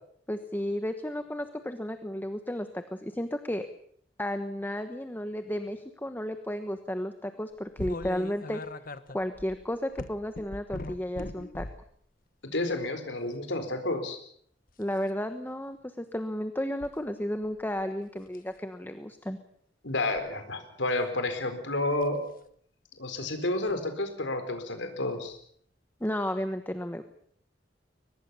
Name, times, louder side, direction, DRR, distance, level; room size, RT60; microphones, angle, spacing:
voice 1, 0.3-3.7 4.2-8.6 9.1-11.7 14.8-19.4 26.0-27.0, left 1 dB, 10° left, 8 dB, 1.2 m, -33 dB
sound 1, 7.8-11.9 12.6-12.9 14.7-15.1 16.8-16.9 17.4-17.8 18.3-18.5 20.0-20.3 22.0-22.2 23.7-23.8 25.3-25.4 26.0-26.1, left 2 dB, 50° left, 1.2 m, -40 dB
voice 2, 12.5-14.2 19.8-22.2 23.0-25.4, left 2 dB, 80° left, 7 dB, 4.3 m, -30 dB
23.5 x 20.0 x 7.0 m, 0.65 s
head